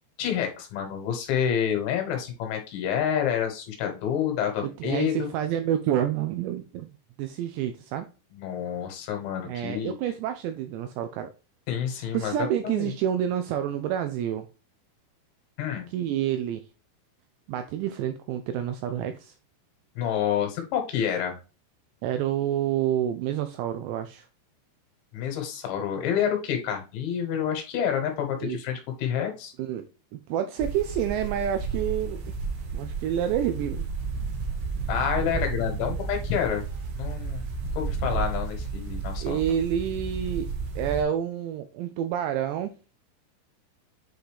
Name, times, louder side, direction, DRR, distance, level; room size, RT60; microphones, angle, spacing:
voice 1, 0.2-5.3 8.4-9.9 11.7-12.3 12.6-12.9 15.6-15.9 20.0-21.4 25.1-29.5 34.9-36.6 37.0-37.4 37.8-39.4, left 8 dB, 75° left, 3.3 m, -28 dB
voice 2, 4.6-6.9 7.2-8.1 9.5-11.3 12.0-14.5 15.9-16.6 17.5-19.4 22.0-24.3 28.4-28.6 29.6-32.3 32.7-33.9 39.2-42.7, right 10 dB, 85° right, 2.5 m, -28 dB
sound 1, 30.6-41.0, right 4 dB, 60° right, 2.6 m, -32 dB
8.2 x 3.9 x 3.3 m
omnidirectional pair, 5.5 m